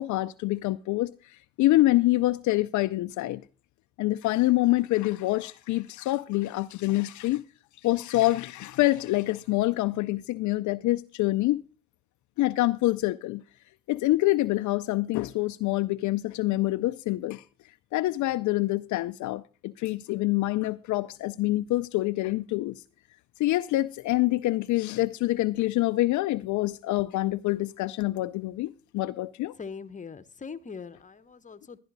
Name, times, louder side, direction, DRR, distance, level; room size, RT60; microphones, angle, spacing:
voice 1, 0.0-3.4 4.0-7.4 7.8-11.6 12.4-13.4 13.9-17.4 17.9-22.8 23.4-29.5, left 17 dB, 65° left, 0.5 m, -26 dB
voice 2, 29.6-31.8, left 5 dB, 25° left, 0.9 m, -41 dB
12.0 x 10.5 x 4.0 m
supercardioid pair, 65°, 33 cm